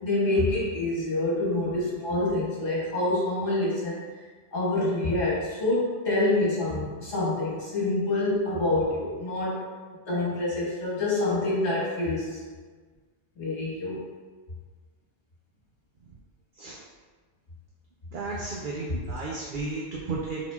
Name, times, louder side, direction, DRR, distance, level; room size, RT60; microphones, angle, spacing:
voice 1, 0.0-3.9 4.5-9.7 10.1-12.4 13.4-14.0, left 2 dB, 65° left, -6 dB, 1.8 m, -26 dB
voice 2, 18.1-20.4, right 3 dB, 50° right, -4 dB, 0.7 m, -33 dB
5.9 x 3.8 x 2.3 m, 1.4 s
omnidirectional pair, 1.3 m